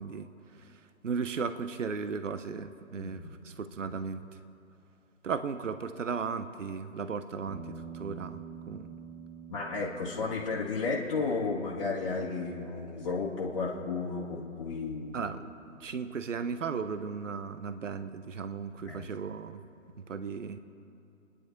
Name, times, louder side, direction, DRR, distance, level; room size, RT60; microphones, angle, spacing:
voice 1, 0.0-4.2 5.2-9.0 15.1-15.5 15.8-19.6 20.0-20.6, right 5 dB, 65° right, 10 dB, 0.9 m, -36 dB
voice 2, 3.0-3.3 9.5-15.2 18.8-19.2, left 4 dB, 25° left, -6 dB, 1.8 m, -33 dB
sound 1, 7.4-15.8, right 6 dB, 40° right, 2.8 m, -49 dB
29.5 x 10.0 x 4.6 m, 2.6 s
figure-of-eight pair, 160°, 41 cm